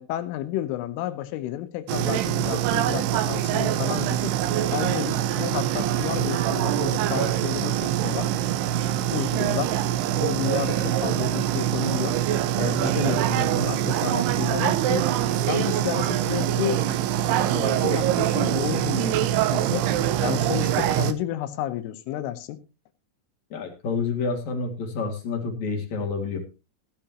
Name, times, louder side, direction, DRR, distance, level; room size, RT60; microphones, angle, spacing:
voice 1, 0.0-4.3 4.7-8.3 9.1-9.8 10.2-12.2 12.6-15.1 15.5-16.8 17.2-22.6, left 12 dB, 80° left, 3.5 m, -31 dB
sound 1, 1.9-21.1, right 11 dB, 85° right, 2.4 m, -24 dB
voice 2, 23.5-26.4, left 4 dB, 45° left, 2.7 m, -28 dB
16.0 x 11.5 x 3.0 m
omnidirectional pair, 5.8 m